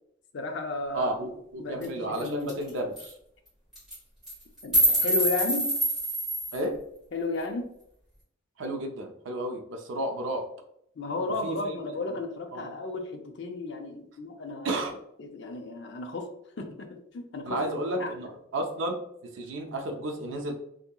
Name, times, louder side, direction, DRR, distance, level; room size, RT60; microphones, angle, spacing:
voice 1, 0.3-1.1 1.6-2.6 4.6-5.7 7.1-7.7 11.0-14.7 15.2-16.3 16.6-17.6 18.0-18.1, left 3 dB, 65° left, 0.4 m, -33 dB
voice 2, 0.9-3.1 6.5-6.8 8.6-10.5 11.4-11.8 12.5-12.7 14.6-14.9 17.5-20.5, right 1 dB, 80° right, 0.5 m, -32 dB
sound 1, 1.8-1.9 2.2-2.3 2.5-2.7 3.0-3.1 3.7-4.0 4.3-6.6, right 1 dB, 5° right, 1.4 m, -25 dB
2.7 x 2.7 x 2.2 m
head